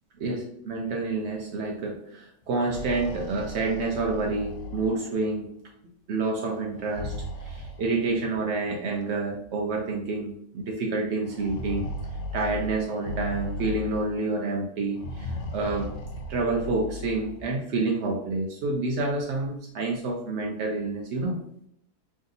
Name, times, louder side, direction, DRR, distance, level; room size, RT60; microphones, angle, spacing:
voice 1, 0.2-5.5 6.1-7.1 7.4-11.9 12.3-15.9 16.3-21.4, right 3 dB, 80° right, 0 dB, 0.6 m, -28 dB
sound 1, 2.5-5.4 6.7-8.4 9.4-9.5 9.9-10.0 11.2-14.4 14.9-17.5, left 1 dB, 80° left, 1.2 m, -37 dB
3.6 x 2.7 x 3.8 m, 0.71 s
omnidirectional pair, 1.8 m